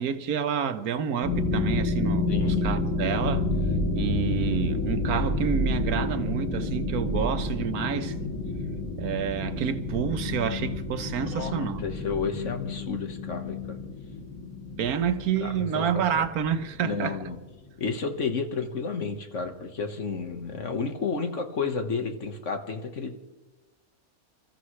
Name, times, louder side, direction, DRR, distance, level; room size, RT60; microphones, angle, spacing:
voice 1, 0.0-3.5 3.9-8.1 9.0-11.8 14.8-17.2, right 8 dB, 90° right, 1.4 m, -29 dB
sound 1, 1.2-17.1, left 2 dB, 10° left, 6.8 m, -29 dB
voice 2, 2.3-2.8 11.2-13.8 15.4-16.2 16.8-17.4 17.8-23.1, left 5 dB, 55° left, 1.7 m, -32 dB
29.0 x 14.0 x 3.2 m
omnidirectional pair, 1.5 m